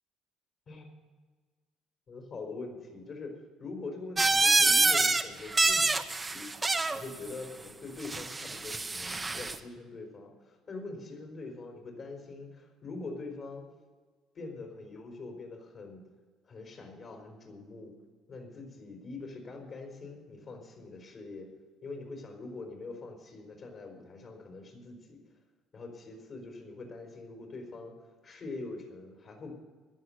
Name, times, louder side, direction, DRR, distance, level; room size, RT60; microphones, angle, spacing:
voice 1, 2.1-13.6 14.3-16.0 16.4-17.9 18.3-21.5 21.8-25.2 25.7-28.0 28.2-29.5, left 3 dB, 45° left, 2 dB, 4.3 m, -43 dB
sound 1, 4.2-5.2 5.5-7.0 8.0-9.6, right 3 dB, 20° right, 1.0 m, -26 dB
15.0 x 11.0 x 6.5 m, 1.4 s
cardioid pair, 100°, 0 cm